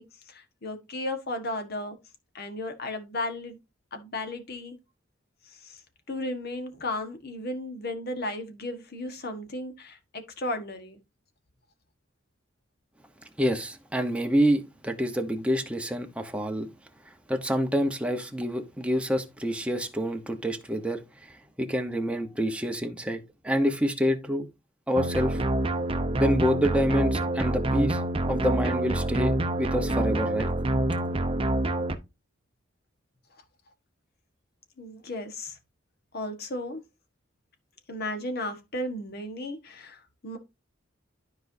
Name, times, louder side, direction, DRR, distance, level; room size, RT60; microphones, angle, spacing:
voice 1, 0.0-2.0 2.3-3.6 3.9-4.8 5.4-5.8 6.1-11.0 34.8-35.6 36.1-36.8 37.9-40.4, left 1 dB, 55° left, 1.5 m, -35 dB
voice 2, 13.4-16.7 17.3-24.5 24.9-25.4 26.2-28.0 28.3-30.5, equal, 5° right, 1.0 m, -27 dB
sound 1, 25.0-32.0, right 1 dB, 30° right, 0.8 m, -26 dB
12.5 x 4.7 x 2.7 m
head